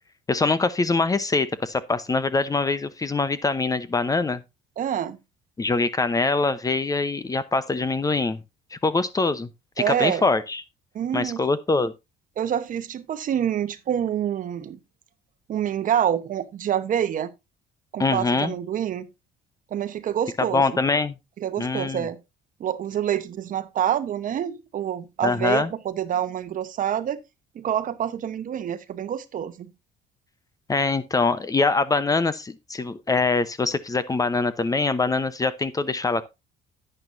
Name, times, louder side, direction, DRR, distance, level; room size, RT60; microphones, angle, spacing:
voice 1, 0.3-4.4 5.6-8.4 8.7-9.5 9.8-10.6 11.1-11.9 18.0-18.5 20.5-21.2 21.6-22.1 25.2-25.7 30.7-36.3, left 3 dB, 20° left, 0.8 m, -23 dB
voice 2, 4.8-5.2 9.8-10.2 10.9-11.4 12.4-14.8 15.5-17.3 17.9-19.1 19.7-20.6 21.4-22.2 22.6-27.2 27.5-29.7, right 10 dB, 50° right, 1.0 m, -27 dB
10.5 x 9.0 x 2.6 m
cardioid pair, 110°, 17 cm